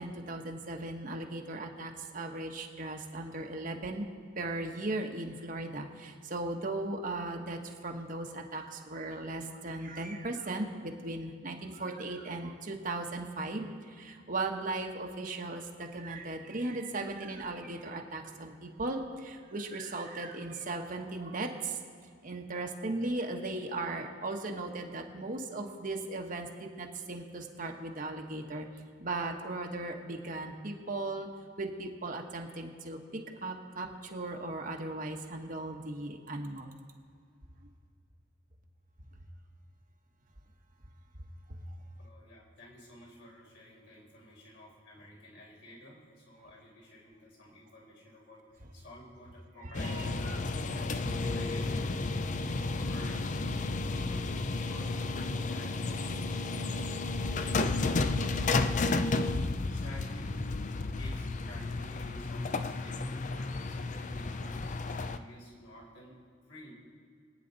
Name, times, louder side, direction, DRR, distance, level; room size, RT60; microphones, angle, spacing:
voice 1, 0.0-4.0 4.3-21.8 22.2-28.7 29.0-31.3 31.6-36.8 41.7-41.8 49.6-50.0, right 2 dB, 45° right, 2 dB, 1.2 m, -37 dB
voice 2, 42.0-50.0 50.7-52.1 52.7-53.4 53.8-54.3 54.6-56.8 57.3-59.0 59.7-60.3 60.7-66.1 66.5-66.7, left 1 dB, 65° left, -4 dB, 4.4 m, -52 dB
sound 1, 49.7-65.2, left 3 dB, 40° left, 0.5 m, -32 dB
25.0 x 9.3 x 4.0 m, 2.1 s
head